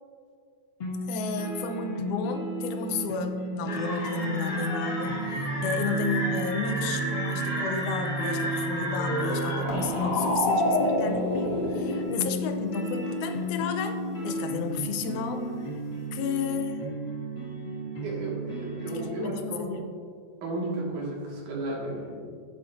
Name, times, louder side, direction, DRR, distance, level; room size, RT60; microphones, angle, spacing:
sound 1, 0.8-19.1, right 1 dB, 40° left, 0.8 m, -33 dB
voice 1, 1.1-15.5 16.1-17.0 18.9-19.8, left 5 dB, 80° left, 7 dB, 2.1 m, -32 dB
sound 2, 3.7-12.0, left 1 dB, 65° left, 3.0 m, -30 dB
voice 2, 18.0-19.8 20.4-22.3, right 2 dB, 80° right, -3 dB, 3.1 m, -34 dB
10.5 x 8.9 x 2.5 m, 2.1 s
omnidirectional pair, 3.5 m